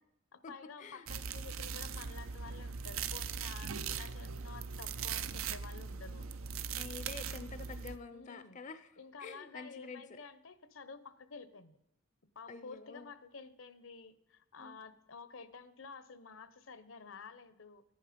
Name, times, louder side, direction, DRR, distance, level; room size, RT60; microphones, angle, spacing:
voice 1, 0.3-6.3 8.1-8.6 9.0-11.8 12.3-17.8, left 4 dB, 75° left, 14 dB, 0.9 m, -51 dB
sound 1, 1.1-8.0, right 6 dB, 85° right, 0.7 m, -40 dB
voice 2, 6.7-8.9 9.2-10.2 12.5-13.1 14.6-14.8, left 4 dB, 35° left, 11 dB, 0.5 m, -48 dB
14.0 x 11.0 x 5.1 m, 0.85 s
head